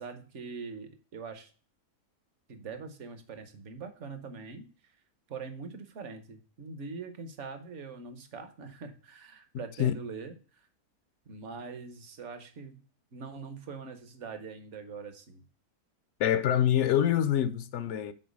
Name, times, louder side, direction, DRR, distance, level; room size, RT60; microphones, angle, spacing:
voice 1, 0.0-1.5 2.5-4.7 5.3-10.7 11.3-12.8 13.1-15.4, right 4 dB, 55° right, 1.2 m, -43 dB
voice 2, 9.5-9.9 16.2-18.1, left 10 dB, 65° left, 0.8 m, -26 dB
6.3 x 4.4 x 5.0 m
omnidirectional pair, 1.5 m